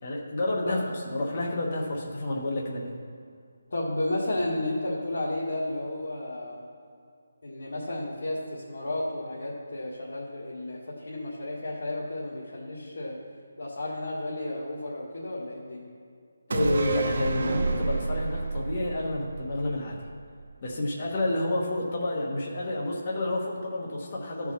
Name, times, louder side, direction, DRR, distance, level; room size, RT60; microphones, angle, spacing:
voice 1, 0.0-3.0 16.5-20.0 20.6-24.5, left 1 dB, 30° left, -2 dB, 1.2 m, -29 dB
voice 2, 3.7-6.7 7.4-13.2 13.6-15.9, left 1 dB, 65° left, -6 dB, 1.8 m, -32 dB
sound 1, 16.5-20.1 20.4-20.5, right 3 dB, 45° right, 0.7 m, -29 dB
13.5 x 4.7 x 5.7 m, 2.3 s
hypercardioid pair, 175°, 0 cm